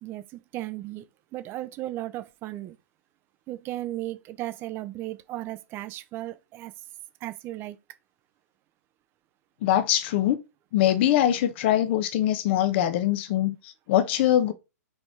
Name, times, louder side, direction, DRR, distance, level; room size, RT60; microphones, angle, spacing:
voice 1, 0.0-1.0 1.3-2.8 3.5-6.7 7.2-7.8, right 15 dB, 25° right, 0.7 m, -35 dB
voice 2, 9.6-10.4 10.7-14.5, left 12 dB, 40° left, 1.0 m, -23 dB
5.2 x 4.2 x 4.7 m
hypercardioid pair, 125°, 9 cm